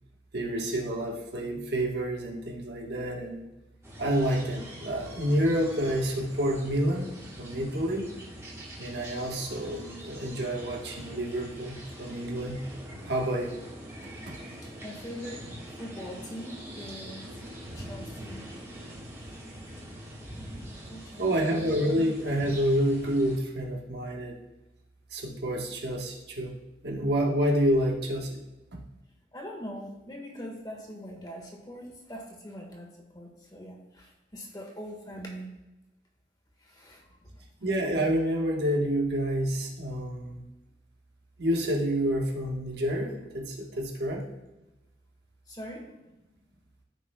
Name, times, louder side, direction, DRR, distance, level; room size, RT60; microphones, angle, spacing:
voice 1, 0.3-3.5 4.0-7.1 7.4-8.1 8.8-12.6 13.0-13.6 14.3-14.4 21.2-24.4 25.1-26.5 26.8-28.4 28.7-28.8 37.6-40.4 41.4-44.3, equal, 70° right, 0 dB, 1.3 m, -28 dB
sound 1, 3.8-23.4, right 1 dB, 15° right, 1.4 m, -44 dB
voice 2, 14.5-15.5 15.8-17.3 17.7-18.5 20.9-21.7 29.3-35.5 36.6-37.1 45.5-45.9, equal, 20° left, 1 dB, 1.4 m, -42 dB
14.0 x 5.4 x 2.2 m, 1.0 s
head